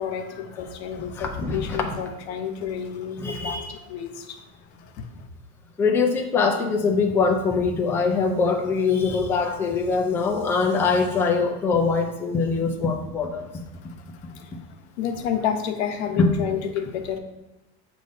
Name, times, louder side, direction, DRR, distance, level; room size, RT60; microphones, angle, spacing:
voice 1, 0.0-4.4 5.0-5.1 14.4-14.5 15.0-17.2, left 8 dB, 90° left, 6 dB, 0.9 m, -30 dB
voice 2, 1.1-2.0 3.2-3.7 5.8-13.4 16.2-16.3, left 4 dB, 5° left, 0 dB, 0.4 m, -23 dB
7.8 x 2.7 x 5.0 m, 1.0 s
supercardioid pair, 160°, 32 cm